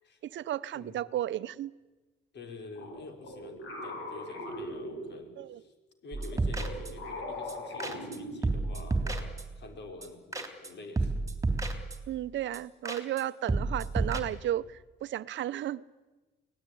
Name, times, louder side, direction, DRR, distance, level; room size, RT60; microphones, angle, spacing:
voice 1, 0.2-1.7 5.4-5.6 12.1-15.8, right 12 dB, 70° right, 0.7 m, -34 dB
voice 2, 2.3-5.7 6.0-11.1, left 3 dB, 60° left, 5.0 m, -47 dB
sound 1, 2.8-5.5 6.1-8.8, left 1 dB, 80° left, 7.2 m, -41 dB
sound 2, 6.1-7.2 7.5-7.6 7.8-8.2 8.4-9.7 10.0-10.7 11.0-12.2 12.5-12.6 12.9-13.2 13.5-14.2, right 3 dB, 15° right, 3.4 m, -31 dB
24.0 x 18.0 x 10.0 m
cardioid pair, 90°, 20 cm